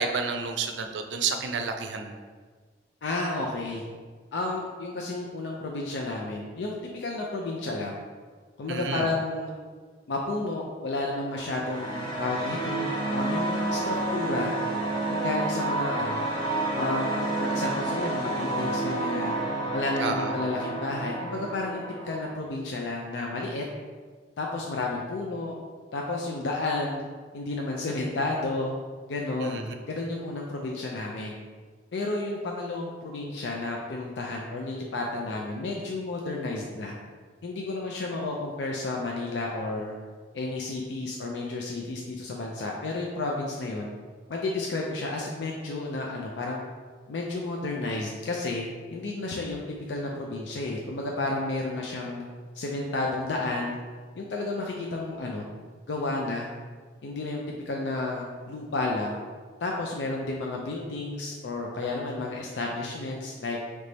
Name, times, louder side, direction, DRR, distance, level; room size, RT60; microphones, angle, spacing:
voice 1, 0.0-2.2 8.7-9.1 20.0-20.3 29.4-29.7, right 5 dB, 90° right, 6 dB, 0.4 m, -30 dB
voice 2, 3.0-3.8 4.3-8.0 8.6-9.5 10.1-14.5 15.1-16.3 16.7-19.4 19.7-23.6 24.4-25.6 25.9-27.0 27.3-28.7 29.1-29.6 29.9-31.4 31.9-36.9 37.4-39.9 40.3-43.9 44.3-46.6 47.1-49.6 49.9-52.2 52.5-53.8 54.2-55.5 55.9-56.5 57.0-59.2 59.6-63.6, left 2 dB, 85° left, -1 dB, 0.4 m, -31 dB
sound 1, 11.3-22.3, right 2 dB, 25° left, 0.9 m, -30 dB
3.9 x 3.2 x 3.3 m, 1.5 s
head